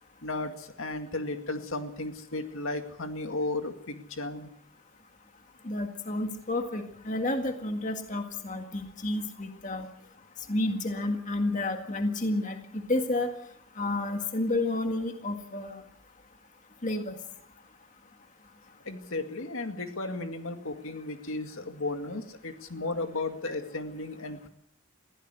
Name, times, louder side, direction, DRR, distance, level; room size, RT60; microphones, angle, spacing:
voice 1, 0.2-4.5 18.9-24.5, left 2 dB, 70° left, 6 dB, 2.1 m, -34 dB
voice 2, 5.6-9.9 10.5-13.3 13.8-15.8 16.8-17.2, left 2 dB, 35° left, 5 dB, 1.9 m, -30 dB
21.5 x 16.0 x 8.1 m, 0.73 s
head